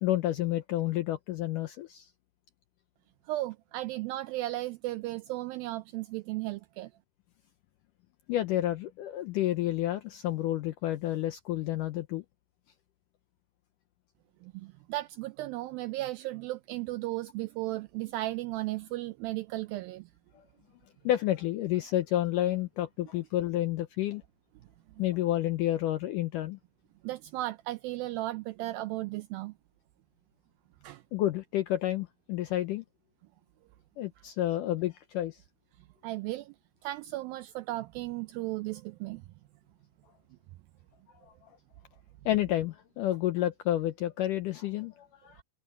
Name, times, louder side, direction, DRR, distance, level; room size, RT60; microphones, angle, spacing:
voice 1, 0.0-2.1 8.3-12.2 20.3-20.4 21.0-24.2 25.0-26.6 31.1-32.8 34.0-35.4 42.3-45.4, left 13 dB, 80° left, 1.9 m, -30 dB
voice 2, 3.3-6.9 14.4-20.1 25.0-25.1 27.0-29.5 30.8-31.0 36.0-36.5 36.8-39.2, right 17 dB, 85° right, 2.1 m, -35 dB
omnidirectional pair, 4.6 m